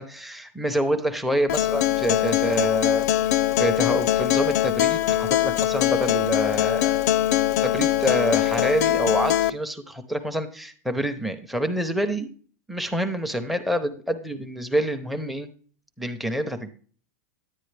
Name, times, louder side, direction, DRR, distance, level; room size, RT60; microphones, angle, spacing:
voice 1, 0.0-3.1 3.6-7.0 7.6-12.3 12.7-15.5 16.0-16.7, equal, ahead, 10 dB, 0.7 m, -27 dB
Acoustic guitar, 1.5-9.5, left 13 dB, 75° left, 0.5 m, -22 dB
10.0 x 9.1 x 3.3 m, 0.42 s
supercardioid pair, 160°, 9 cm